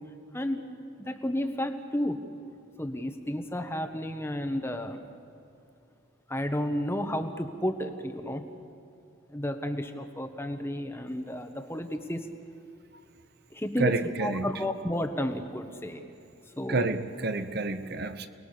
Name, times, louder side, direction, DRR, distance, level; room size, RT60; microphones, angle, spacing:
voice 1, 0.3-0.6 1.0-2.2 2.8-5.0 6.3-8.4 9.3-12.3 13.5-16.0 16.6-16.9, left 1 dB, 10° left, 7 dB, 1.2 m, -32 dB
voice 2, 13.8-14.5 16.7-18.3, right 3 dB, 50° right, 10 dB, 0.9 m, -29 dB
29.5 x 20.0 x 6.8 m, 2.6 s
head